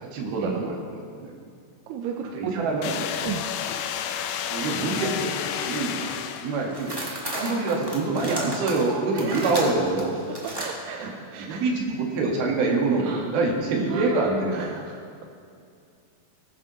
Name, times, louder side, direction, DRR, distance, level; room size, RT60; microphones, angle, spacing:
voice 1, 0.0-1.3 2.3-3.1 4.5-5.4 5.7-7.0 7.3-10.2 11.0-11.1 11.4-14.8, right 3 dB, 70° right, -1 dB, 3.5 m, -26 dB
voice 2, 1.9-2.9 3.2-3.5 9.1-9.7 10.5-11.7 13.0-13.3 13.9-15.0, right 6 dB, 90° right, 1 dB, 2.8 m, -34 dB
sound 1, 2.8-6.8, left 9 dB, 85° left, 1.9 m, -31 dB
sound 2, 5.5-5.7 6.0-6.4 6.7-10.7, right 1 dB, 10° right, 1.1 m, -34 dB
21.0 x 11.0 x 3.1 m, 2.4 s
omnidirectional pair, 4.6 m